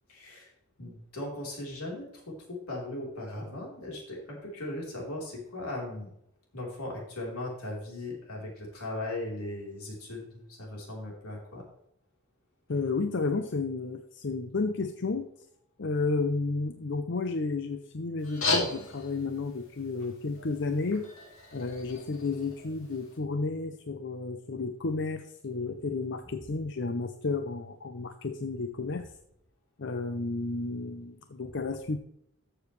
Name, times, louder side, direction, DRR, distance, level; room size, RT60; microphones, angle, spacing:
voice 1, 0.1-0.5 0.8-6.1 6.5-11.6, left 1 dB, 85° left, -2 dB, 3.8 m, -38 dB
voice 2, 12.7-15.3 15.8-21.1 21.5-29.1 29.8-32.0, left 3 dB, 55° left, 7 dB, 0.6 m, -32 dB
sound 1, 18.2-23.2, left 3 dB, 70° left, 2.5 m, -35 dB
13.5 x 7.0 x 3.2 m, 0.76 s
head